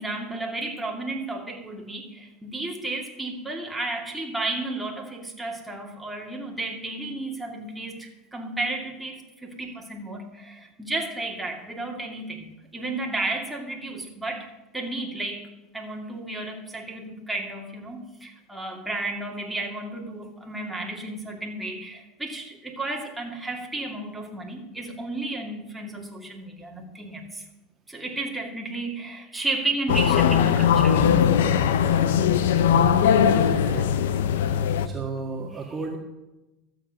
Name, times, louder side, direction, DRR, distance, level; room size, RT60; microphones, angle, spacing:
voice 1, 0.0-27.5 27.9-31.0 35.5-35.6, right 2 dB, 5° right, 0 dB, 2.4 m, -33 dB
sound 1, 29.9-34.9, left 8 dB, 85° left, 0.7 m, -20 dB
voice 2, 32.7-33.9 34.5-36.0, right 3 dB, 25° right, 0 dB, 1.7 m, -34 dB
12.5 x 7.9 x 6.5 m, 1.0 s
supercardioid pair, 110°, 0 cm